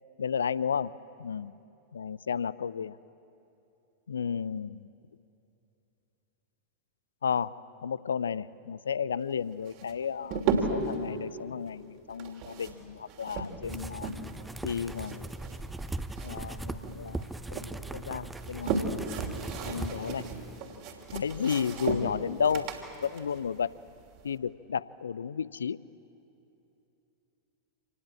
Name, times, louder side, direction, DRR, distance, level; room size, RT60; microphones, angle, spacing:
voice 1, 0.2-0.9 1.2-1.5 1.9-3.0 4.1-4.9 7.2-10.4 10.7-14.1 14.6-15.3 16.2-17.6 17.9-18.8 19.6-20.3 21.1-22.7 23.0-23.7 24.2-25.8, left 7 dB, 70° left, 20 dB, 0.5 m, -32 dB
sound 1, 9.7-11.0 12.1-14.4 14.7-16.6 16.8-17.7 18.2-24.3, right 4 dB, 45° right, 2.8 m, -35 dB
sound 2, 13.6-20.6, right 2 dB, 10° right, 0.7 m, -39 dB
26.5 x 19.5 x 8.7 m, 2.8 s
figure-of-eight pair, 90°, 0 cm